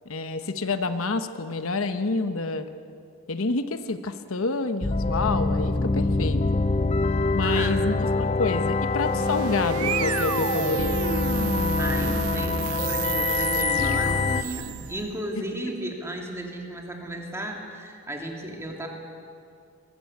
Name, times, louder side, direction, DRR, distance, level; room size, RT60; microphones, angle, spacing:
voice 1, 0.0-2.7 3.3-6.6 7.3-10.9, left 3 dB, 75° left, 9 dB, 1.0 m, -28 dB
sound 1, 4.8-14.4, left 3 dB, 30° left, 0.5 m, -25 dB
voice 2, 7.4-7.8 11.8-18.9, right 1 dB, 10° right, 1 dB, 2.6 m, -34 dB
sound 2, 8.9-15.2, right 9 dB, 90° right, 0.5 m, -31 dB
22.0 x 19.5 x 8.5 m, 2.5 s
head